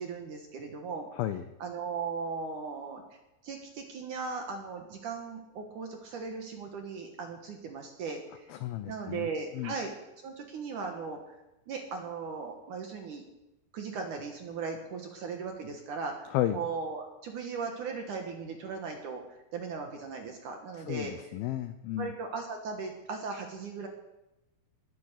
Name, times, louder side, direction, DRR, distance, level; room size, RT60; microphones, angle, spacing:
voice 1, 0.0-1.1 1.6-3.0 3.4-8.5 8.9-9.9 10.2-11.2 11.7-13.2 13.7-19.2 19.5-21.3 22.0-23.9, right 5 dB, 60° right, 3 dB, 2.3 m, -37 dB
voice 2, 1.1-1.5 8.5-9.3 9.5-9.8 16.3-16.6 20.9-22.1, left 13 dB, 85° left, 10 dB, 2.1 m, -33 dB
19.5 x 9.7 x 6.6 m, 0.96 s
omnidirectional pair, 5.2 m